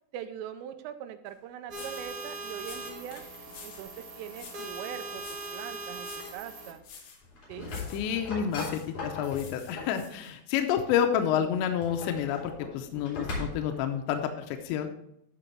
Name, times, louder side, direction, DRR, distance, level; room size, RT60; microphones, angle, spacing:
voice 1, 0.1-3.2 3.6-5.2 5.5-6.8 7.5-7.7, right 9 dB, 85° right, 9 dB, 3.3 m, -41 dB
sound 1, 1.3-1.4 1.7-2.1 2.6-3.9 4.3-4.8 5.2-5.6 6.0-6.4 6.8-7.2 7.7-8.1 8.5-8.9 9.3-10.6, left 6 dB, 65° left, 2.2 m, -49 dB
sound 2, 1.7-6.7, right 3 dB, 50° right, 2.6 m, -40 dB
sound 3, 7.2-10.0 11.6-13.8, left 3 dB, 40° left, 4.6 m, -38 dB
voice 2, 7.9-14.9, left 9 dB, 85° left, 5 dB, 2.7 m, -29 dB
14.0 x 5.2 x 4.4 m, 0.77 s
omnidirectional pair, 5.7 m